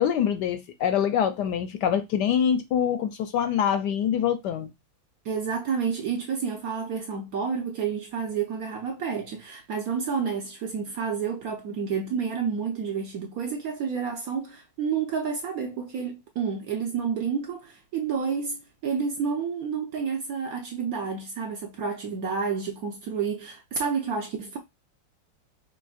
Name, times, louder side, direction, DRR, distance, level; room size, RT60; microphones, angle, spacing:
voice 1, 0.0-4.7, left 8 dB, 75° left, 1.0 m, -25 dB
voice 2, 5.2-24.6, right 6 dB, 65° right, 0.9 m, -30 dB
5.2 x 3.4 x 2.4 m
omnidirectional pair, 2.1 m